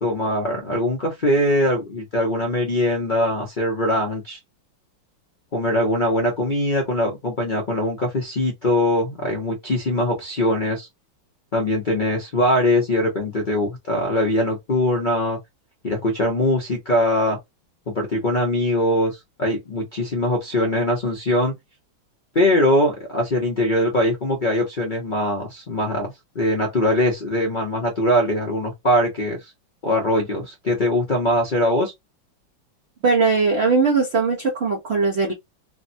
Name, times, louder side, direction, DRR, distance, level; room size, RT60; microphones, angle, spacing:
voice 1, 0.0-4.4 5.5-10.9 11.5-15.4 15.8-17.4 17.9-21.5 22.3-29.5 29.8-31.9, left 1 dB, 55° left, 0.5 m, -22 dB
voice 2, 33.0-35.3, right 4 dB, 65° right, 0.6 m, -19 dB
3.4 x 2.1 x 2.6 m
omnidirectional pair, 2.1 m